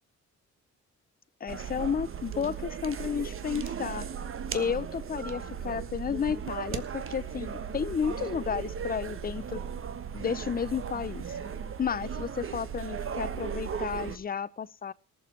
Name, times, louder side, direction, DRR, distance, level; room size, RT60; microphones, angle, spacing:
voice 1, 1.4-4.1 4.5-9.6 10.1-11.4 11.8-14.9, left 7 dB, 30° left, 17 dB, 0.7 m, -32 dB
sound 1, 1.5-14.2, right 7 dB, 45° right, 1.3 m, -36 dB
18.5 x 7.0 x 6.1 m, 0.36 s
cardioid pair, 90°, 30 cm